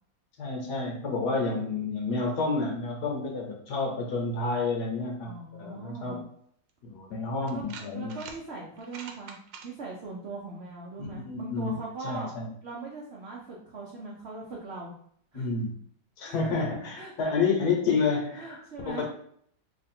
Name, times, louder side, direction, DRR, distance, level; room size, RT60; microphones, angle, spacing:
voice 1, 0.4-6.2 6.8-8.1 11.0-11.8 12.0-12.4 15.3-15.7 16.2-18.6 18.9-19.0, left 4 dB, 65° left, 0 dB, 1.4 m, -29 dB
voice 2, 5.2-6.2 7.4-7.6 7.9-12.4 12.6-14.9 15.3-15.5 16.2-16.6 16.9-17.1 18.3-19.0, right 3 dB, 65° right, -3 dB, 0.6 m, -40 dB
sound 1, 6.7-6.8 7.5-8.4 8.8-9.7, right 6 dB, 80° right, 1.3 m, -44 dB
3.2 x 2.5 x 4.2 m, 0.64 s
omnidirectional pair, 2.0 m